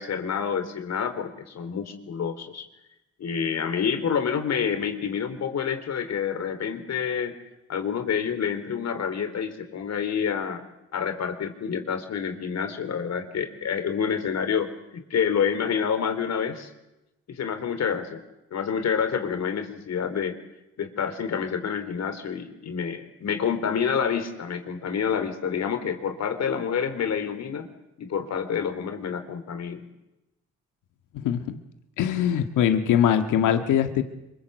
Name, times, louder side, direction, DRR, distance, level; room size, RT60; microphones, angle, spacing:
voice 1, 0.0-2.6 3.2-7.3 7.7-10.6 10.9-16.7 17.3-18.2 18.5-20.4 20.8-27.7 28.0-29.8, left 7 dB, 60° left, 7 dB, 3.7 m, -28 dB
voice 2, 31.2-31.6 32.0-34.0, left 9 dB, 85° left, 7 dB, 1.8 m, -22 dB
25.5 x 23.5 x 8.1 m, 0.92 s
cardioid pair, 90°, 30 cm